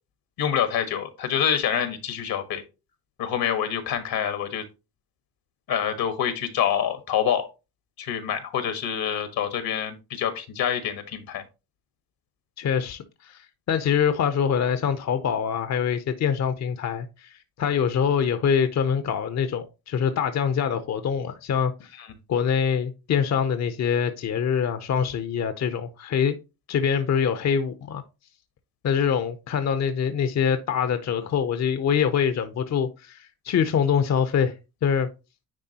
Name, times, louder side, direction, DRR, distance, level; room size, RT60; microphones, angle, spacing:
voice 1, 0.4-2.6 3.2-4.6 5.7-7.5 8.0-11.4 22.0-22.1, left 9 dB, 80° left, 1.4 m, -26 dB
voice 2, 12.6-22.0 22.3-26.4 26.7-28.0 28.8-34.5 34.8-35.1, left 7 dB, 50° left, 0.7 m, -24 dB
9.8 x 3.5 x 2.8 m
cardioid pair, 105°, 36 cm